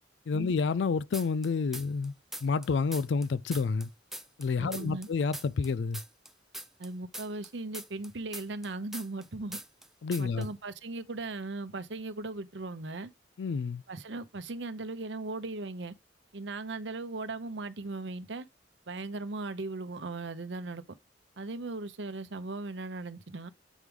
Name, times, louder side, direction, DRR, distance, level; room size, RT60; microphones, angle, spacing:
voice 1, 0.3-2.1 2.4-3.9 4.4-6.0 10.0-10.5 13.4-13.8, left 4 dB, 75° left, 0.4 m, -29 dB
sound 1, 1.1-2.1 2.3-5.1 5.3-9.3 9.5-9.9 10.1-10.5, right 1 dB, ahead, 0.5 m, -42 dB
voice 2, 4.6-5.1 6.8-9.6 10.2-13.1 13.9-15.9 16.3-18.4 18.9-20.8 21.4-23.5, right 2 dB, 80° right, 0.8 m, -38 dB
8.2 x 4.7 x 3.5 m
head